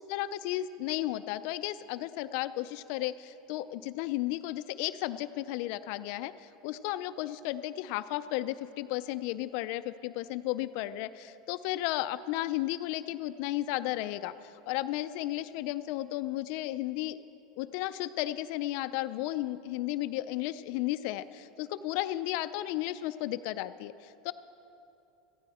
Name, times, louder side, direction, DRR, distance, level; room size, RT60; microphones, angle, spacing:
voice 1, 0.0-17.2 17.6-24.3, left 15 dB, 65° left, 12 dB, 0.4 m, -34 dB
16.5 x 14.5 x 4.2 m, 2.8 s
supercardioid pair, 115°, 0 cm